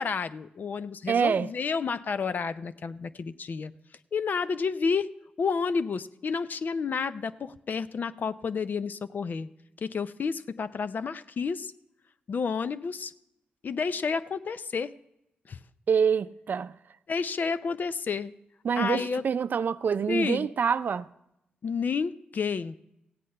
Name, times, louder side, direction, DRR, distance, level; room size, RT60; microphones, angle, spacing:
voice 1, 0.0-3.7 4.1-5.1 5.4-9.5 9.8-11.7 12.3-13.1 13.6-14.9 15.5-15.6 17.1-18.3 18.8-19.2 20.1-20.5 21.6-22.8, left 5 dB, 60° left, 0.6 m, -30 dB
voice 2, 1.1-1.5 15.9-16.8 18.6-21.1, right 6 dB, 60° right, 0.4 m, -26 dB
15.5 x 8.5 x 5.4 m
cardioid pair, 60°, 3 cm